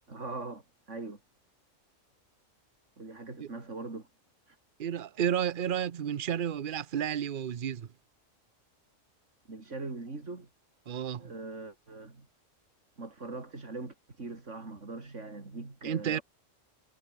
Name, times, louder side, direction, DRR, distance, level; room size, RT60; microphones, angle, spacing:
voice 1, 0.1-1.2 3.0-4.1 4.5-4.6 9.5-10.5 11.2-12.3 13.0-16.2, right 3 dB, 70° right, 3.9 m, -41 dB
voice 2, 4.8-7.9 10.9-11.3 15.8-16.2, right 9 dB, 50° right, 0.9 m, -31 dB
omnidirectional pair, 1.3 m